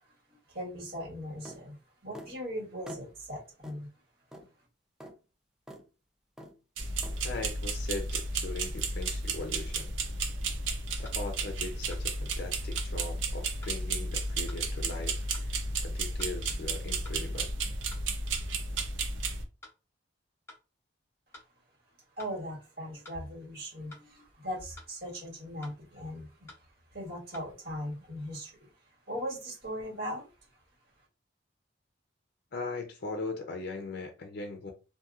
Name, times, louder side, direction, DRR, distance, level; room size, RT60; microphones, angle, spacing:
voice 1, 0.5-1.7 2.0-3.9 22.2-26.5 26.9-28.6 29.1-30.3, equal, 55° right, 1.6 m, -39 dB
sound 1, 1.5-1.6 2.1-2.3 2.9-3.1 3.6-3.8 4.3-4.5 5.0-5.1 5.7-5.8 6.4-6.6 7.0-7.2, equal, 5° right, 0.4 m, -45 dB
sound 2, 6.8-19.4, right 3 dB, 80° right, 0.6 m, -33 dB
voice 2, 7.2-9.9 11.0-17.5 32.5-34.7, left 3 dB, 55° left, 0.5 m, -40 dB
sound 3, 11.0-11.2 11.9-12.1 12.8-12.9 13.6-13.8 14.5-14.6 15.3-15.5 16.2-16.4 17.0-17.2 17.9-18.1 18.8-18.9 19.6-19.8 20.5-20.6 21.3-21.5 22.2-22.4 23.0-23.2 23.9-24.1 24.8-24.9 25.6-25.8 26.5-26.6 27.3-27.5, left 2 dB, 15° left, 0.9 m, -51 dB
2.8 x 2.6 x 2.4 m
head